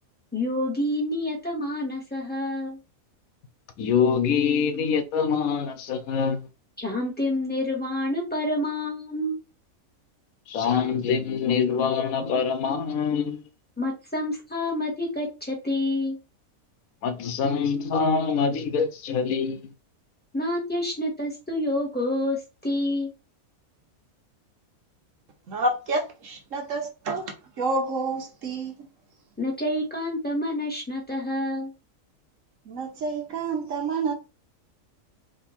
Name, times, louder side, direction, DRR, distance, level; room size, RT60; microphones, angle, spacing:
voice 1, 0.3-2.8 6.8-9.4 13.8-16.2 20.3-23.1 29.4-31.7, left 1 dB, 5° left, 1.8 m, -28 dB
voice 2, 3.8-6.5 10.5-13.4 17.0-19.7, left 6 dB, 85° left, 1.2 m, -25 dB
voice 3, 25.5-28.7 32.7-34.1, right 3 dB, 70° right, 1.4 m, -29 dB
3.7 x 3.0 x 4.3 m
omnidirectional pair, 1.4 m